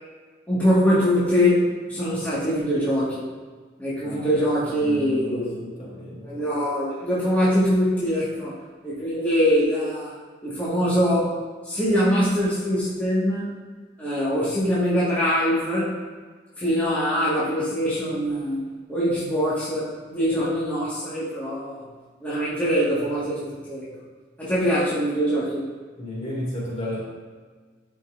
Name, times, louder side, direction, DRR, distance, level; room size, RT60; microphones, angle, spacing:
voice 1, 0.5-3.3 3.8-5.6 6.2-8.6 8.8-10.1 10.4-11.3 11.6-13.5 14.0-15.9 16.6-21.8 22.2-23.9 24.4-25.7, equal, 10° left, -11 dB, 1.6 m, -23 dB
voice 2, 4.0-4.4 4.8-6.4 26.0-27.1, left 1 dB, 40° left, -5 dB, 2.4 m, -33 dB
12.0 x 5.4 x 2.5 m, 1.5 s
head